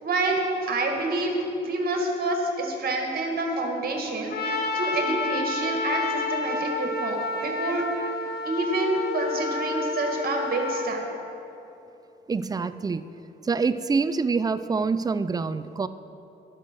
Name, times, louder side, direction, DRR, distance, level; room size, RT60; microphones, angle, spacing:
voice 1, 0.0-1.4 1.6-8.1 8.5-11.0, right 2 dB, 50° right, 2 dB, 1.9 m, -28 dB
Trumpet, 4.3-10.9, left 3 dB, 50° left, 1.2 m, -29 dB
voice 2, 12.3-13.0 13.4-15.9, right 4 dB, 20° right, 13 dB, 0.4 m, -26 dB
11.5 x 6.1 x 6.2 m, 2.8 s
cardioid pair, 90°, 20 cm